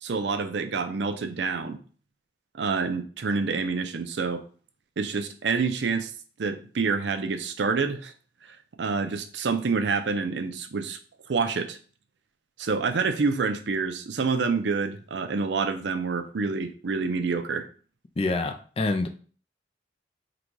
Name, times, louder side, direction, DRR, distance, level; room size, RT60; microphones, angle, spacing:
voice 1, 0.0-1.8 2.5-4.4 5.0-6.1 6.4-8.1 8.5-11.0 11.3-11.8 12.6-17.7, right 4 dB, 75° right, 8 dB, 0.5 m, -27 dB
voice 2, 18.2-19.1, left 2 dB, 30° left, 6 dB, 0.4 m, -26 dB
3.9 x 2.3 x 4.5 m, 0.41 s
head